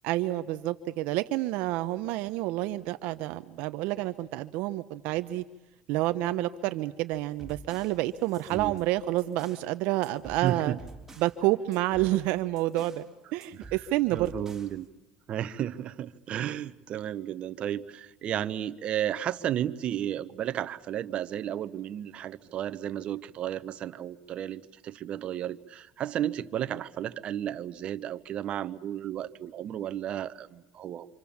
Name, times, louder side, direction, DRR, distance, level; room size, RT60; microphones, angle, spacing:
voice 1, 0.0-5.4 5.9-10.7 11.2-13.0 13.3-14.3, right 16 dB, 75° right, 10 dB, 0.8 m, -29 dB
sound 1, 7.1-9.7 10.0-11.4 11.7-13.1 13.4-14.8, right 3 dB, 15° right, 4.0 m, -49 dB
voice 2, 8.5-8.8 10.4-10.8 13.6-13.7 14.1-14.9 15.3-31.1, right 11 dB, 50° right, 12 dB, 1.1 m, -33 dB
26.5 x 26.5 x 7.2 m, 1.0 s
supercardioid pair, 100°, 2 cm